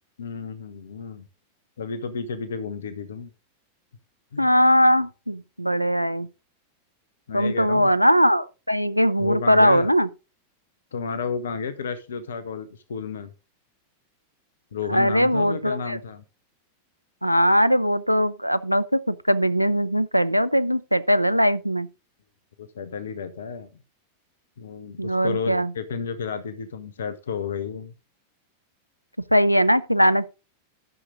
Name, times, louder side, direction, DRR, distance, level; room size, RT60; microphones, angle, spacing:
voice 1, 0.2-1.3 1.8-3.3 4.3-4.5 7.3-7.9 9.2-9.9 10.9-13.3 14.7-16.2 22.6-23.7 24.6-27.9, left 5 dB, 65° left, 0.9 m, -32 dB
voice 2, 4.4-6.3 7.3-10.1 14.9-16.0 17.2-21.9 25.0-25.7 29.3-30.3, equal, 90° left, 0.5 m, -20 dB
11.0 x 6.6 x 3.8 m
figure-of-eight pair, 90°, 0 cm